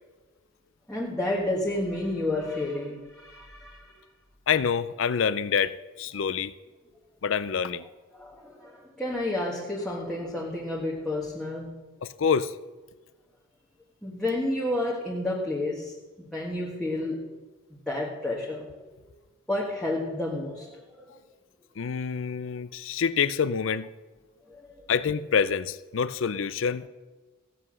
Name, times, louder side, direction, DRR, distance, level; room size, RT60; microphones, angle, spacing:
voice 1, 0.9-3.9 8.1-11.7 14.0-15.9 16.3-17.3 17.9-18.8 19.5-20.7 24.5-24.7, left 1 dB, 5° left, -4 dB, 1.4 m, -30 dB
voice 2, 4.5-6.5 7.2-7.9 12.0-12.5 21.8-23.9 24.9-26.9, left 6 dB, 65° left, 15 dB, 0.5 m, -26 dB
16.0 x 7.7 x 6.3 m, 1.2 s
head